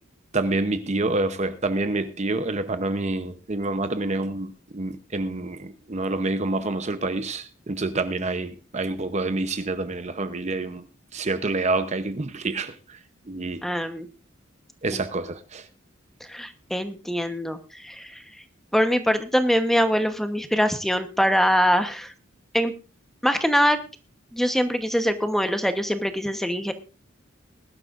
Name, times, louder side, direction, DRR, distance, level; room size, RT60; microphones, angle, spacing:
voice 1, 0.3-10.8 11.1-13.0 13.3-13.6 14.8-15.6, right 2 dB, 35° right, 0.7 m, -27 dB
voice 2, 13.6-14.1 14.9-15.0 16.3-18.2 18.7-22.1 22.5-22.7 23.2-23.8 24.3-26.7, equal, ahead, 1.0 m, -23 dB
20.5 x 11.5 x 2.5 m
head